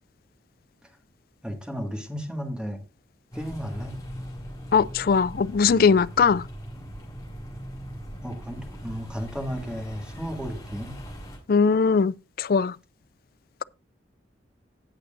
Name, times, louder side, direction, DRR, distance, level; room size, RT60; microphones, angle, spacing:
voice 1, 1.4-2.8 3.3-4.0 8.2-10.9, equal, 5° right, 1.8 m, -34 dB
sound 1, 3.3-11.4, equal, 20° left, 4.2 m, -40 dB
voice 2, 4.7-6.4 11.5-12.7, left 5 dB, 55° left, 0.4 m, -20 dB
18.0 x 6.6 x 2.5 m
head